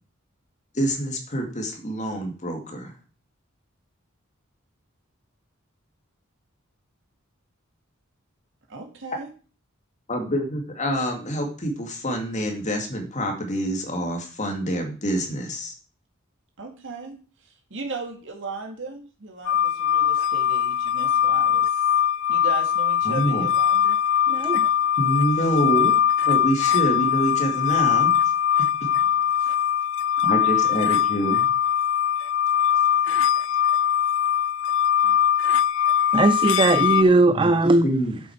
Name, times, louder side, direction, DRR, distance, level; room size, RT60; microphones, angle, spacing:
voice 1, 0.7-2.9 10.1-15.7 23.0-23.5 25.0-26.0 26.2-28.1 28.8-28.9 30.2-31.5 35.0-35.1 37.3-37.5 37.8-38.2, equal, 35° left, 3 dB, 2.0 m, -26 dB
voice 2, 8.7-9.3 16.6-17.2 17.7-21.7 22.3-24.0, right 4 dB, 65° right, 2 dB, 2.2 m, -36 dB
sound 1, 19.5-37.0, left 9 dB, 65° left, 0.4 m, -21 dB
voice 3, 24.3-24.7 36.1-37.9, right 2 dB, 25° right, 12 dB, 0.4 m, -18 dB
8.2 x 7.4 x 4.6 m, 0.38 s
head